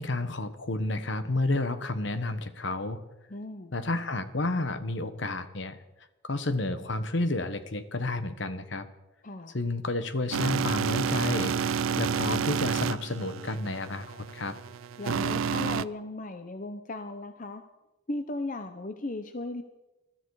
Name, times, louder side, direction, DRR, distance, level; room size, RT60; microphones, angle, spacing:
voice 1, 0.0-3.0 3.7-5.8 6.2-8.9 9.5-14.6, left 2 dB, 60° left, 11 dB, 1.2 m, -31 dB
voice 2, 3.3-3.7 9.2-9.6 15.0-17.6 18.1-19.6, left 2 dB, 40° left, 8 dB, 0.7 m, -36 dB
sound 1, 10.3-15.8, right 6 dB, 80° right, 0.4 m, -30 dB
20.5 x 13.0 x 4.8 m, 1.0 s
head